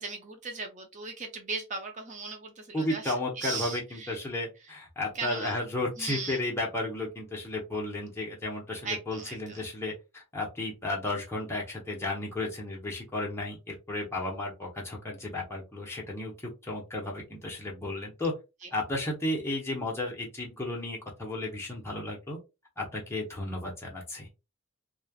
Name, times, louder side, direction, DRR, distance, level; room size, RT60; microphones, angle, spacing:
voice 1, 0.0-4.2 5.1-5.5 6.0-6.4 8.8-9.6 18.6-18.7, right 4 dB, 35° right, 4 dB, 0.5 m, -38 dB
voice 2, 2.7-18.3 18.7-22.4 22.8-24.3, left 2 dB, 10° left, -3 dB, 0.9 m, -33 dB
3.2 x 2.3 x 2.3 m, 0.26 s
head